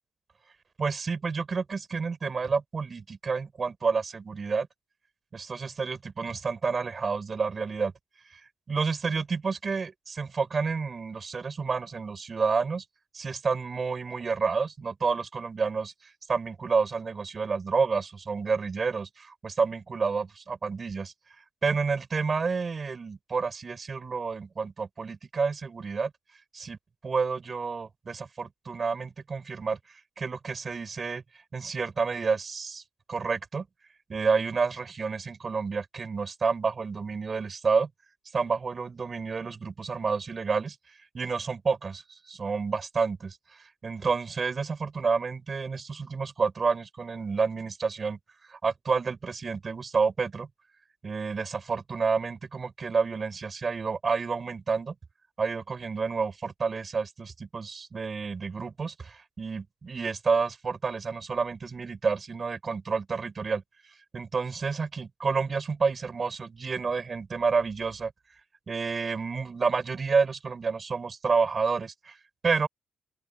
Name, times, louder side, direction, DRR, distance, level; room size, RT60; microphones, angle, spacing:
voice 1, 0.8-4.7 5.3-7.9 8.3-12.8 13.1-21.1 21.6-26.1 26.5-26.8 27.0-32.8 33.1-33.7 34.1-37.9 38.3-40.8 41.1-50.5 51.0-54.9 55.4-63.6 64.1-68.1 68.7-72.2 72.4-72.7, right 5 dB, 35° right, 5.6 m, -29 dB
open air
cardioid pair, 90°, 0 cm